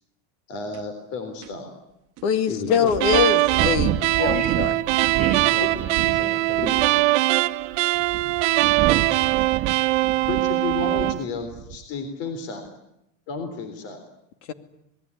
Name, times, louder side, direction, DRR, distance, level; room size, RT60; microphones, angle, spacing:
voice 1, 0.5-1.7 2.5-3.0 5.6-5.7 6.6-7.0 10.3-12.6 13.3-14.0, left 4 dB, 40° left, 8 dB, 3.7 m, -32 dB
sound 1, 0.7-0.8 1.4-1.5 2.2-2.3 2.9-6.2 6.5-7.0 7.7-11.2 11.5-11.8, right 13 dB, 45° right, 1.4 m, -29 dB
voice 2, 2.2-4.7 14.5-14.6, left 7 dB, 70° left, 9 dB, 2.5 m, -23 dB
sound 2, 3.0-11.2, right 19 dB, 75° right, 1.2 m, -22 dB
voice 3, 4.2-4.8 5.2-7.1, equal, 20° left, 9 dB, 5.4 m, -35 dB
27.0 x 20.0 x 9.9 m, 0.83 s
supercardioid pair, 155°, 36 cm